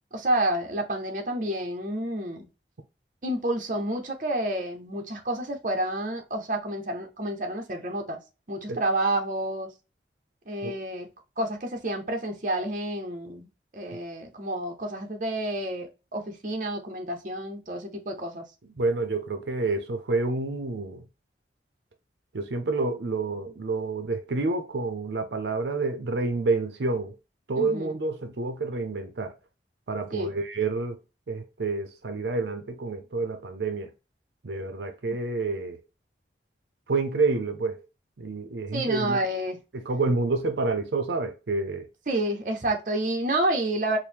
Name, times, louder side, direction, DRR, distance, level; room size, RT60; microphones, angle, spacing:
voice 1, 0.1-2.5 3.2-8.2 8.5-9.7 10.5-11.1 11.4-13.5 13.7-18.4 27.6-27.9 30.1-30.3 38.7-39.6 42.1-44.0, right 1 dB, 45° right, 0.7 m, -29 dB
voice 2, 18.7-21.0 22.3-27.1 27.5-29.3 29.9-31.0 31.3-33.9 34.4-35.8 36.9-37.8 38.2-39.2 39.7-41.9, right 3 dB, 80° right, 0.6 m, -28 dB
4.5 x 2.1 x 3.4 m
head